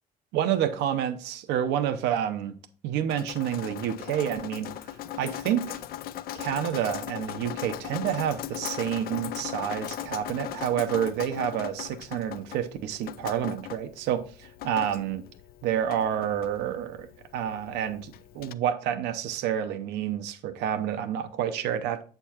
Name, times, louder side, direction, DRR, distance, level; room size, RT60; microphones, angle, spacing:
voice 1, 0.3-2.6 2.8-4.7 5.2-5.8 6.3-14.2 14.6-15.2 15.6-22.0, right 9 dB, 90° right, 0.8 m, -29 dB
Drip, 3.1-18.5, left 12 dB, 65° left, 0.5 m, -39 dB
8.1 x 6.8 x 2.9 m
cardioid pair, 110°, 17 cm